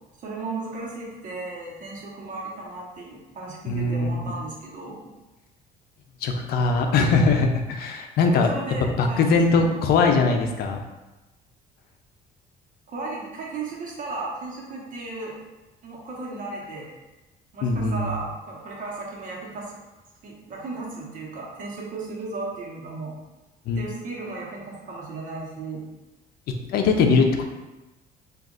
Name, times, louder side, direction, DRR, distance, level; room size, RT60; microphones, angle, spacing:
voice 1, 0.2-5.1 8.3-9.4 12.9-15.4 15.8-16.9 17.5-19.7 20.2-23.2 23.7-25.8, right 3 dB, 50° right, -3 dB, 1.0 m, -35 dB
voice 2, 3.7-4.3 6.2-8.5 9.0-10.8 17.6-18.1 23.7-23.8 26.7-27.4, left 4 dB, 65° left, 4 dB, 0.5 m, -21 dB
5.0 x 2.5 x 2.4 m, 1.1 s
cardioid pair, 110°, 17 cm